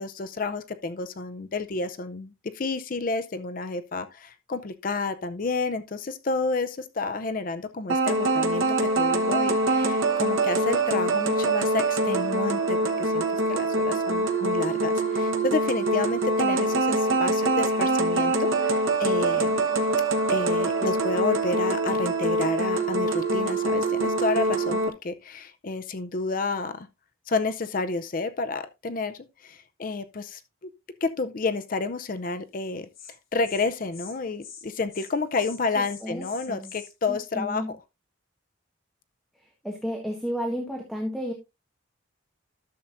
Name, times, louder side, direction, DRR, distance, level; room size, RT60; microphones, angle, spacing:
voice 1, 0.0-19.7 20.3-26.9 27.3-30.4 31.0-32.9 33.3-37.8, left 3 dB, 40° left, 0.5 m, -30 dB
sound 1, 7.9-24.9, right 2 dB, 80° right, 1.1 m, -24 dB
Insect, 32.6-32.7 32.9-33.1 33.4-33.7 33.9-34.1 34.4-34.6 34.9-35.1 35.4-36.9, left 7 dB, 75° left, 3.0 m, -44 dB
voice 2, 36.0-36.7 37.1-37.7 39.6-41.3, equal, ahead, 1.2 m, -32 dB
12.0 x 6.9 x 2.5 m
head